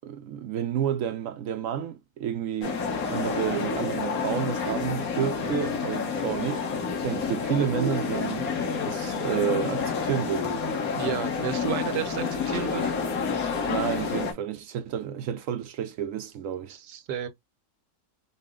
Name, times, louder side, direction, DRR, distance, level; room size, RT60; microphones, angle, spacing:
voice 1, 0.0-6.6 7.0-10.5 13.7-16.7, right 9 dB, 70° right, 0.8 m, -30 dB
sound 1, 2.6-14.3, left 5 dB, 60° left, 1.6 m, -29 dB
voice 2, 11.0-12.9 16.7-17.3, right 8 dB, 85° right, 1.5 m, -32 dB
5.4 x 2.1 x 3.6 m
omnidirectional pair, 1.8 m